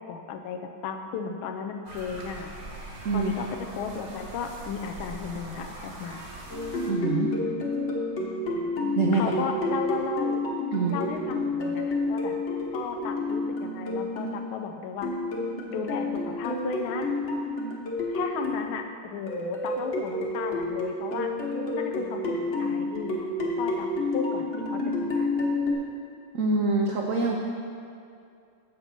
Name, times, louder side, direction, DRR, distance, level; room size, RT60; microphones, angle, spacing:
voice 1, 0.0-2.5 3.1-3.5 3.8-6.2 9.1-10.4 10.9-12.3 12.7-15.1 15.7-17.1 18.1-21.3 21.7-23.1 23.6-23.9 24.1-25.3, left 6 dB, 80° left, 5 dB, 1.5 m, -34 dB
sound 1, 1.9-6.9, right 2 dB, 40° right, 1.3 m, -42 dB
sound 2, 6.5-14.3 15.0-18.7 19.3-25.7, left 2 dB, 40° left, 1.3 m, -29 dB
voice 2, 6.9-7.3 8.9-9.3 10.7-11.0 26.3-27.4, right 3 dB, 75° right, -2 dB, 0.7 m, -25 dB
7.9 x 5.7 x 5.9 m, 2.4 s
omnidirectional pair, 2.3 m